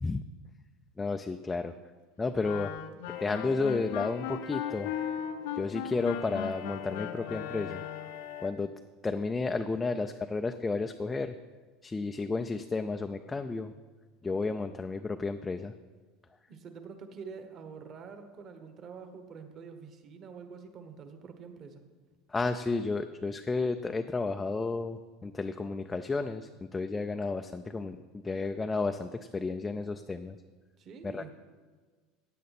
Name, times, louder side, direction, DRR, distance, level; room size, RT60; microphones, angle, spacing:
voice 1, 1.0-1.7 2.2-2.8 3.2-4.9 5.5-7.8 8.4-8.7 9.0-11.3 11.8-13.7 14.2-15.7 22.3-30.4 31.0-31.3, left 3 dB, 10° left, 6 dB, 0.3 m, -32 dB
Wind instrument woodwind instrument, 2.4-8.1, left 10 dB, 85° left, 0.7 m, -37 dB
sound 1, 3.1-8.5, left 10 dB, 55° left, 0.9 m, -43 dB
voice 2, 16.5-21.8 30.8-31.3, right 5 dB, 35° right, 7 dB, 1.2 m, -46 dB
15.0 x 9.3 x 4.2 m, 1.4 s
cardioid pair, 160°, 0 cm